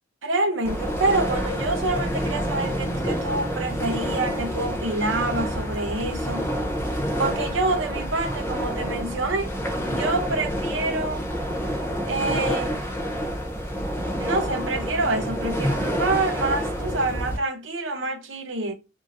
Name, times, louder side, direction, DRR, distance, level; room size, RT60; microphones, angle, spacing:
voice 1, 0.2-6.5 7.2-9.5 9.8-11.2 12.1-12.8 14.2-18.7, right 2 dB, 80° right, 0.8 m, -27 dB
sound 1, 0.6-17.4, equal, 15° left, 0.8 m, -28 dB
3.0 x 2.7 x 2.5 m
head